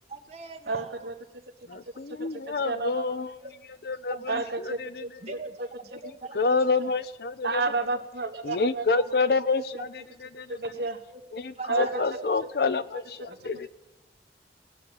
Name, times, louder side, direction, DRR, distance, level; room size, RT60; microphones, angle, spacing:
voice 1, 0.1-1.1 1.7-1.8 3.4-3.5 4.1-4.4 5.2-6.6 8.4-8.6 11.1-12.3 12.7-12.8 13.3-13.4, right 4 dB, 35° right, 1 dB, 1.6 m, -42 dB
voice 2, 0.7-1.1 2.6-3.0 4.3-4.8 7.4-9.0 10.5-11.0 11.7-12.2, right 3 dB, 65° right, 5 dB, 1.2 m, -30 dB
voice 3, 1.7-3.3 3.8-5.0 6.3-7.6 8.4-9.7 10.3-10.6 11.3-11.4 11.7-13.7, left 4 dB, 60° left, 14 dB, 0.6 m, -27 dB
17.0 x 7.2 x 9.9 m, 1.0 s
head